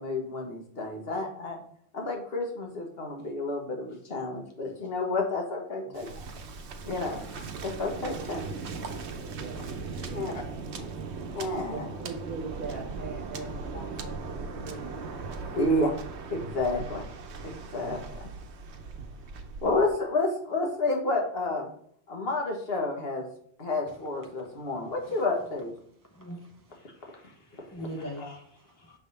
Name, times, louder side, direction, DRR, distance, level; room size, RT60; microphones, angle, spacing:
voice 1, 0.0-1.6 1.9-6.2 6.8-8.4 10.1-10.3 10.8-10.9 11.3-11.9 13.7-13.8 15.5-15.9 16.3-17.1 17.4-18.2 19.6-21.7 22.1-23.3 23.6-25.7 28.2-28.3, left 2 dB, 65° left, 1.6 m, -30 dB
Waves surf, 5.9-19.9, right 4 dB, 90° right, 1.0 m, -39 dB
voice 2, 6.8-7.3 9.3-9.6 10.1-10.5 11.7-15.0, right 4 dB, 55° right, 1.2 m, -41 dB
voice 3, 24.3-24.6 25.0-25.2 26.0-27.1 27.4-28.9, equal, 25° left, 0.6 m, -43 dB
6.6 x 3.5 x 4.1 m
omnidirectional pair, 1.1 m